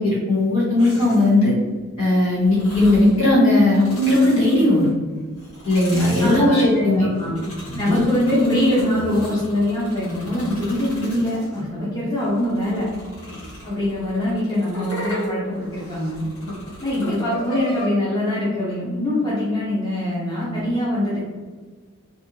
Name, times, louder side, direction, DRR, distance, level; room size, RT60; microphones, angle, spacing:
voice 1, 0.0-1.6 2.0-4.9 5.6-7.1 7.7-8.0, left 1 dB, 70° left, -8 dB, 1.4 m, -17 dB
sound 1, 0.8-1.4 2.4-3.2 3.6-4.9 5.4-11.6 12.2-17.9, left 1 dB, 85° left, 0.9 m, -36 dB
voice 2, 6.2-7.3 7.8-12.9 13.6-16.2 16.8-21.2, left 1 dB, 20° left, -7 dB, 0.5 m, -23 dB
2.5 x 2.4 x 2.9 m, 1.4 s
head